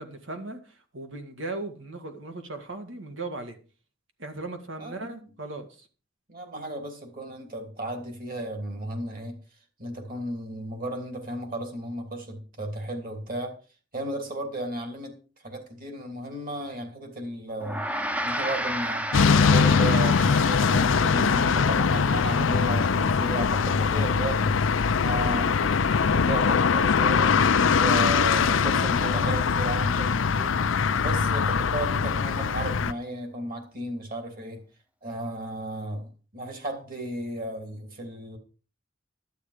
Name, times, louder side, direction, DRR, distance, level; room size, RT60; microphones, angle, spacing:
voice 1, 0.0-3.6 4.2-5.9, right 2 dB, 80° right, 1.8 m, -37 dB
voice 2, 4.8-5.2 6.3-9.4 9.8-13.5 13.9-17.9 18.2-24.5 25.0-34.6 35.0-38.4, right 1 dB, 50° right, 2.9 m, -34 dB
Gong, 17.6-27.2, equal, 5° right, 0.7 m, -35 dB
sound 1, 19.1-32.9, left 5 dB, 85° left, 0.6 m, -22 dB
11.5 x 9.1 x 5.0 m
head